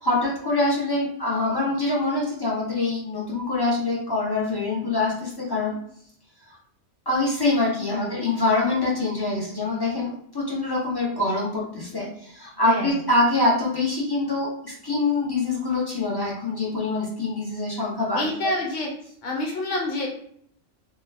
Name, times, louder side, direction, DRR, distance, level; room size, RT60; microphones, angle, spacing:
voice 1, 0.0-5.8 7.1-18.3, left 2 dB, 35° left, -4 dB, 0.3 m, -24 dB
voice 2, 12.6-13.0 18.1-18.9 19.2-20.1, left 1 dB, 90° left, -1 dB, 1.1 m, -27 dB
2.2 x 2.1 x 3.3 m, 0.65 s
omnidirectional pair, 1.3 m